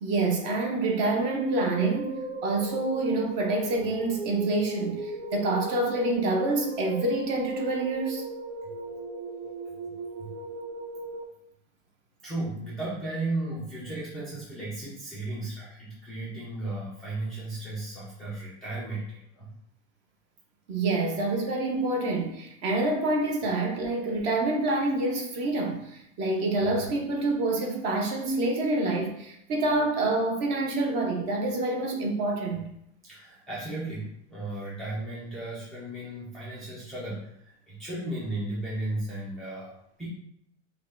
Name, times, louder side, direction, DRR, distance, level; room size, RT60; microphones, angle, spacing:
voice 1, 0.0-8.3 20.7-32.7, right 2 dB, 35° right, 0.7 m, -27 dB
sound 1, 1.0-11.2, right 2 dB, 60° right, 0.9 m, -37 dB
voice 2, 12.2-19.5 33.0-40.1, right 2 dB, ahead, 0.4 m, -35 dB
5.2 x 2.3 x 3.7 m
supercardioid pair, 160°, 35 cm